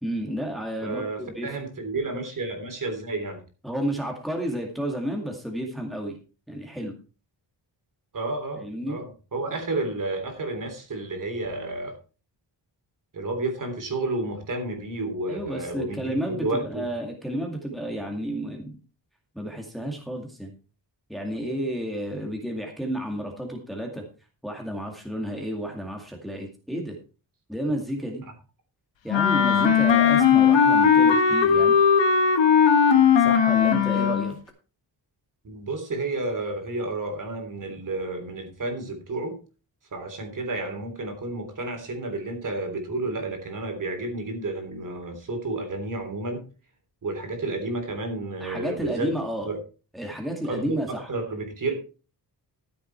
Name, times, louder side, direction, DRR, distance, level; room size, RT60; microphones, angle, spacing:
voice 1, 0.0-1.5 3.6-6.2 6.5-6.9 8.6-9.0 15.3-18.8 19.3-20.5 21.1-24.0 24.4-27.0 27.5-28.2 29.0-31.8 33.2-34.4 48.4-49.5 49.9-51.1, equal, ahead, 1 dB, 2.2 m, -31 dB
voice 2, 0.8-3.4 8.1-11.9 13.1-16.9 35.4-39.3 39.9-46.4 47.0-49.6 50.5-51.7, right 2 dB, 45° right, 5 dB, 3.3 m, -31 dB
Wind instrument woodwind instrument, 29.1-34.3, left 7 dB, 85° left, 1.7 m, -18 dB
13.5 x 7.5 x 4.5 m, 0.34 s
wide cardioid pair, 175°, 43 cm